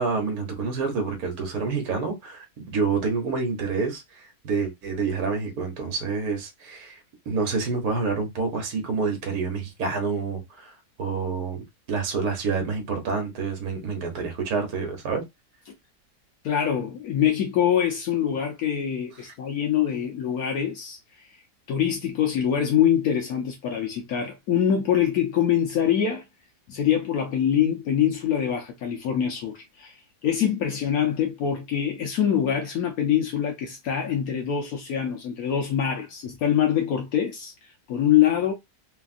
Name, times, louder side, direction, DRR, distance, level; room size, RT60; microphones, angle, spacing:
voice 1, 0.0-2.5 2.7-7.0 7.3-10.7 11.0-15.2, right 4 dB, 65° right, 1.5 m, -28 dB
voice 2, 16.4-21.0 21.7-26.2 26.7-29.9 30.2-37.5 37.9-38.5, left 9 dB, 70° left, 1.0 m, -24 dB
3.4 x 2.3 x 2.4 m
omnidirectional pair, 1.7 m